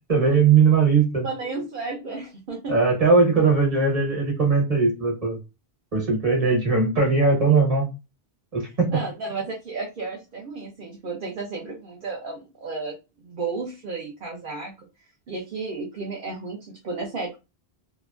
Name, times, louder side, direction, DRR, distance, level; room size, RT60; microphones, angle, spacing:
voice 1, 0.1-1.2 2.7-5.4 5.9-7.9 8.5-9.0, right 4 dB, 35° right, -2 dB, 1.3 m, -19 dB
voice 2, 1.2-2.8 8.9-13.0 13.2-14.7 15.3-17.4, right 3 dB, 60° right, -1 dB, 0.8 m, -33 dB
2.9 x 2.2 x 2.4 m, 0.26 s
omnidirectional pair, 1.1 m